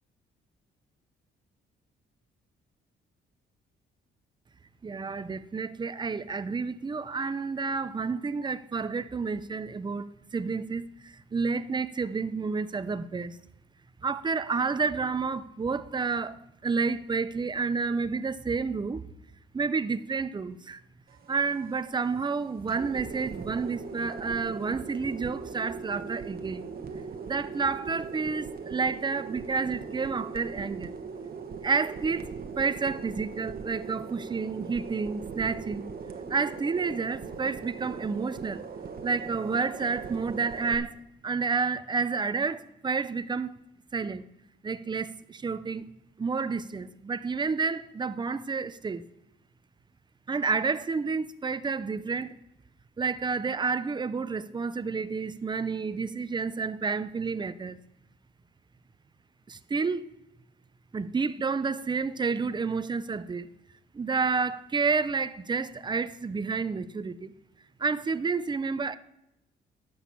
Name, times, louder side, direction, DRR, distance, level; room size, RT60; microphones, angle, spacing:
voice 1, 4.8-10.1 10.3-13.3 14.0-16.4 16.6-19.0 19.5-20.8 21.3-26.7 27.2-30.9 31.6-32.3 32.6-35.8 36.3-38.6 39.0-41.0 41.2-43.5 43.9-44.3 44.6-45.9 46.2-49.0 50.3-52.4 53.0-57.8 59.5-60.0 60.9-63.5 63.9-67.3 67.8-69.0, right 4 dB, 20° right, 0.6 m, -30 dB
sound 1, 21.1-40.8, right 5 dB, 50° right, 1.2 m, -40 dB
11.0 x 6.4 x 7.1 m
cardioid pair, 90°, 20 cm